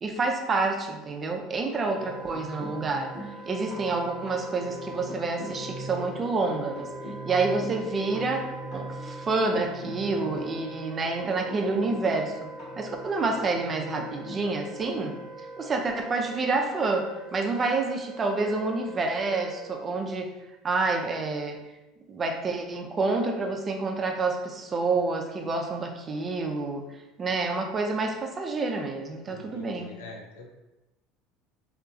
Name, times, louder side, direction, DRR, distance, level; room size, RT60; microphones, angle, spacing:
voice 1, 0.0-3.1 3.5-6.9 7.2-12.5 12.8-15.1 15.6-20.3 20.6-21.6 22.1-26.8 27.2-29.9, right 3 dB, 30° right, 3 dB, 0.5 m, -28 dB
Wind instrument woodwind instrument, 1.7-19.9, right 1 dB, 15° right, 1.0 m, -43 dB
sound 1, 1.9-15.9 17.2-17.3 17.6-17.8, right 1 dB, 60° left, 1.5 m, -42 dB
voice 2, 29.3-30.5, left 3 dB, 80° left, 1 dB, 0.5 m, -44 dB
2.8 x 2.3 x 2.6 m, 1.0 s
hypercardioid pair, 80°, 0 cm